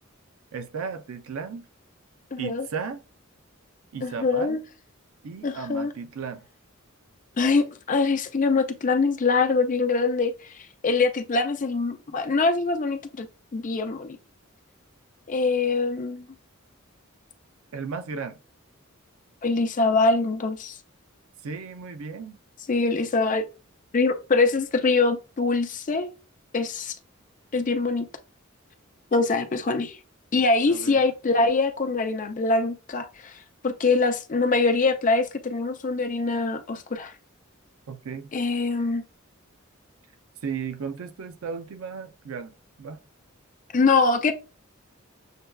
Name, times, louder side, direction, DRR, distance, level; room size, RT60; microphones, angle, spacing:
voice 1, 0.5-1.7 2.4-3.0 3.9-4.6 5.2-6.5 17.7-18.4 21.4-22.4 30.7-31.0 37.9-38.3 40.4-43.0, right 5 dB, 90° right, 0.5 m, -35 dB
voice 2, 2.3-2.7 4.0-4.6 5.4-5.9 7.4-13.3 13.5-14.2 15.3-16.3 19.4-20.8 22.7-23.5 23.9-26.1 26.5-27.0 27.5-28.1 29.1-30.0 30.3-33.3 33.6-37.1 38.3-39.0 43.7-44.3, left 3 dB, 40° left, 0.5 m, -23 dB
6.5 x 2.3 x 2.3 m
head